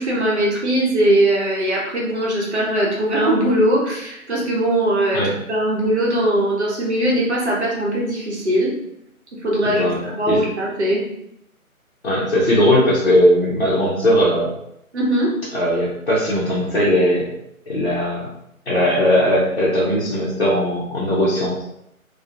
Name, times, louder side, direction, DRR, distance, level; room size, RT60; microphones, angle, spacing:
voice 1, 0.0-8.8 9.4-11.0 14.9-15.3, right 1 dB, 50° right, -4 dB, 0.8 m, -20 dB
voice 2, 9.6-10.0 10.3-10.4 12.0-14.5 15.5-17.3 17.7-18.3 18.7-21.6, equal, 45° left, -8 dB, 0.6 m, -18 dB
2.3 x 2.1 x 2.6 m, 0.79 s
figure-of-eight pair, 160°, 43 cm